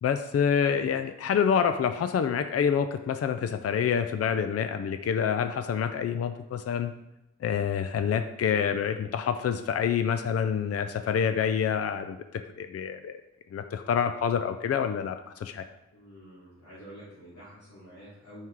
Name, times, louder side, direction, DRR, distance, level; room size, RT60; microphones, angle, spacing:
voice 1, 0.0-6.9 7.4-13.2 13.5-15.6, left 7 dB, 55° left, 9 dB, 0.4 m, -27 dB
voice 2, 15.9-18.5, equal, 90° left, -10 dB, 2.2 m, -48 dB
5.7 x 4.5 x 4.7 m, 0.91 s
wide cardioid pair, 140°, 29 cm